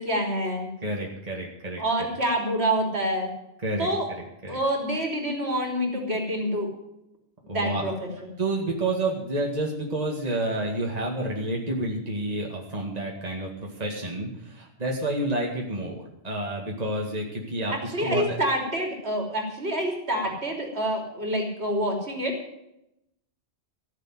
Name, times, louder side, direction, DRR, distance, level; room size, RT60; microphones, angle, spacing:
voice 1, 0.0-0.7 1.8-3.3 3.8-4.1 4.5-6.7 7.5-8.3 17.7-22.3, right 1 dB, 65° right, 1 dB, 3.6 m, -27 dB
voice 2, 0.8-1.8 3.6-3.9 4.4-4.6 7.5-7.8 8.4-17.7 18.0-18.2, right 1 dB, 35° right, -1 dB, 2.2 m, -29 dB
15.0 x 7.4 x 9.1 m, 0.84 s
omnidirectional pair, 1.2 m